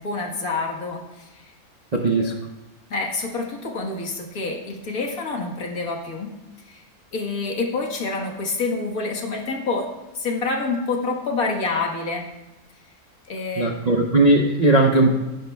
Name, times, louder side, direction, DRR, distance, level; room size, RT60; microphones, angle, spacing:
voice 1, 0.0-1.5 2.1-2.3 2.9-6.3 6.7-6.8 7.1-9.9 10.2-12.3 13.3-13.7, left 3 dB, 70° left, 0 dB, 1.9 m, -27 dB
voice 2, 1.9-2.3 13.6-15.1, right 2 dB, 45° right, 1 dB, 0.5 m, -18 dB
15.5 x 10.5 x 2.3 m, 1.1 s
omnidirectional pair, 1.6 m